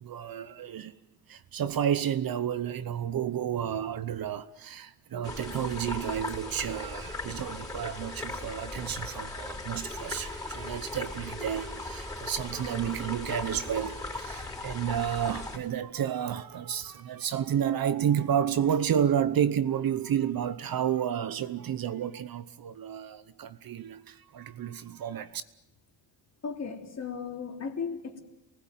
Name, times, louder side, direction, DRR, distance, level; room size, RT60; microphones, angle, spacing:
voice 1, 0.0-0.9 1.3-25.4, right 9 dB, 50° right, 0.9 m, -31 dB
sound 1, 5.2-15.6, left 2 dB, 10° left, 5.4 m, -38 dB
voice 2, 26.4-28.2, left 5 dB, 35° left, 3.3 m, -36 dB
27.5 x 20.0 x 9.2 m
cardioid pair, 160°, 46 cm